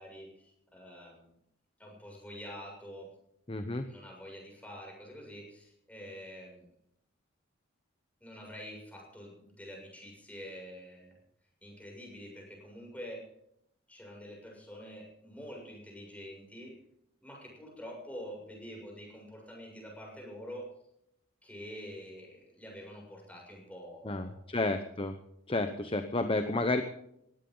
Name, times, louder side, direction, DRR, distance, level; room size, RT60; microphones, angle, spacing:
voice 1, 0.0-1.3 1.8-3.1 3.9-6.7 8.2-11.2 11.6-13.2 13.9-16.7 17.2-20.7 21.4-24.4, equal, 5° left, 0 dB, 7.0 m, -46 dB
voice 2, 3.5-3.9 24.0-25.2 25.5-26.8, left 2 dB, 25° left, 7 dB, 0.9 m, -31 dB
19.5 x 16.5 x 4.0 m, 0.75 s
head